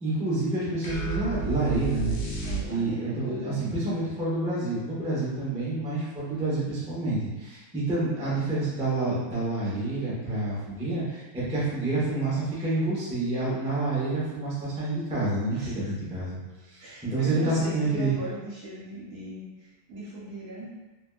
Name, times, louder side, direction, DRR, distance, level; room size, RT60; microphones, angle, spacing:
voice 1, 0.0-16.4 16.7-18.2, right 2 dB, 10° right, -8 dB, 0.4 m, -28 dB
sound 1, 0.8-3.1, right 5 dB, 70° left, 1.0 m, -31 dB
voice 2, 2.4-3.8 15.5-15.9 16.8-20.7, right 2 dB, 80° right, -9 dB, 1.5 m, -39 dB
3.3 x 2.2 x 2.2 m, 1.1 s
omnidirectional pair, 1.6 m